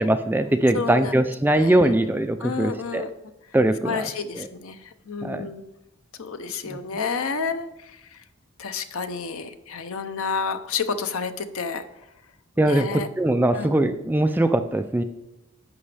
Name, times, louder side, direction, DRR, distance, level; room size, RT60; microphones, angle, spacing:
voice 1, 0.0-3.1 3.5-4.5 5.2-5.5 6.6-6.8 12.6-15.0, right 1 dB, 10° right, 8 dB, 0.3 m, -21 dB
voice 2, 0.7-1.2 1.5-1.8 2.4-3.1 3.8-4.8 5.1-5.6 6.2-7.9 8.6-11.9 12.7-13.1 13.5-13.7, left 5 dB, 70° left, 10 dB, 0.7 m, -30 dB
11.0 x 7.1 x 3.4 m, 0.91 s
head